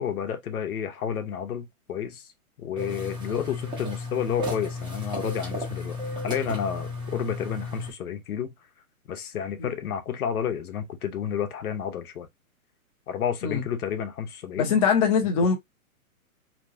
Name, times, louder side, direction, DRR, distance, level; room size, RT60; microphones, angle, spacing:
voice 1, 0.0-2.3 2.6-8.5 9.1-12.3 13.1-14.7, left 8 dB, 75° left, 0.9 m, -31 dB
sound 1, 2.8-7.9, left 2 dB, 10° right, 0.7 m, -33 dB
voice 2, 14.6-15.5, left 6 dB, 25° left, 0.7 m, -22 dB
2.9 x 2.3 x 2.6 m
hypercardioid pair, 145°, 44 cm